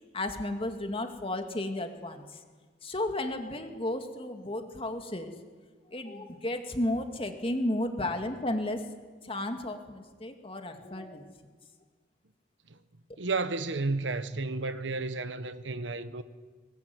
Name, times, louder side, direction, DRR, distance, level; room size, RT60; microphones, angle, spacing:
voice 1, 0.1-2.4 2.8-5.3 5.9-8.8 9.2-11.3, left 1 dB, 30° left, 2.3 m, -33 dB
voice 2, 13.2-16.2, right 3 dB, 90° right, 1.2 m, -32 dB
23.5 x 20.0 x 9.5 m
head